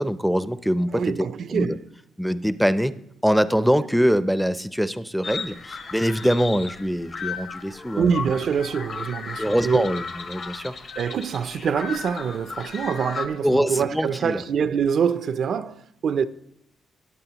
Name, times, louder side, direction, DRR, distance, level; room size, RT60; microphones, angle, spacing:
voice 1, 0.0-1.1 1.5-1.8 2.2-2.9 3.2-8.1 9.4-10.7 13.4-14.4, equal, ahead, 0.5 m, -23 dB
voice 2, 0.9-1.9 8.0-9.9 11.0-16.3, right 7 dB, 60° right, 0.4 m, -25 dB
sound 1, 5.2-13.3, left 5 dB, 55° left, 1.3 m, -35 dB
16.5 x 8.6 x 2.9 m
cardioid pair, 90°, 0 cm